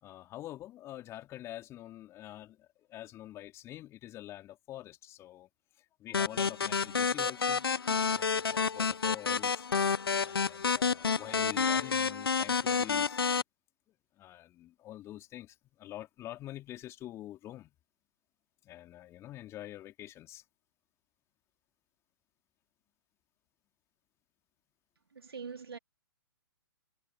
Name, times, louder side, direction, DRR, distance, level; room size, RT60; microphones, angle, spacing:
voice 1, 0.0-5.5 5.8-7.7 8.1-9.7 10.1-13.2 14.2-17.7 18.6-20.4, left 14 dB, 20° left, 3.2 m, -46 dB
sound 1, 6.1-13.4, left 5 dB, 75° left, 1.1 m, -29 dB
voice 2, 25.1-25.8, right 5 dB, 80° right, 2.9 m, -43 dB
figure-of-eight pair, 130°, 13 cm